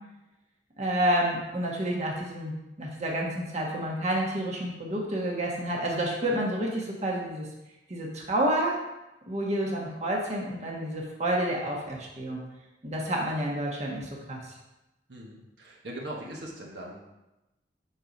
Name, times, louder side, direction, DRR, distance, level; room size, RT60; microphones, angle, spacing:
voice 1, 0.8-7.5 7.9-8.8 9.3-12.4 12.8-14.4, right 1 dB, 40° right, -2 dB, 1.3 m, -29 dB
voice 2, 15.1-17.0, right 1 dB, 75° right, -2 dB, 1.2 m, -40 dB
6.7 x 4.3 x 5.2 m, 0.99 s
head